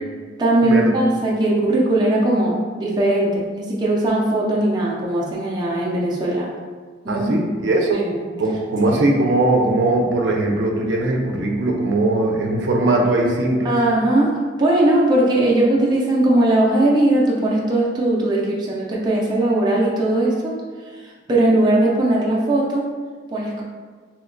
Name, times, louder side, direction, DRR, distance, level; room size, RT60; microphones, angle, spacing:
voice 1, 0.4-6.5 7.0-7.3 7.9-8.2 13.6-20.6 21.0-22.9 23.3-23.6, right 1 dB, 25° right, -5 dB, 0.4 m, -19 dB
voice 2, 7.1-8.0 8.4-13.7, right 2 dB, 75° right, 0 dB, 0.5 m, -20 dB
2.9 x 2.2 x 3.7 m, 1.5 s
head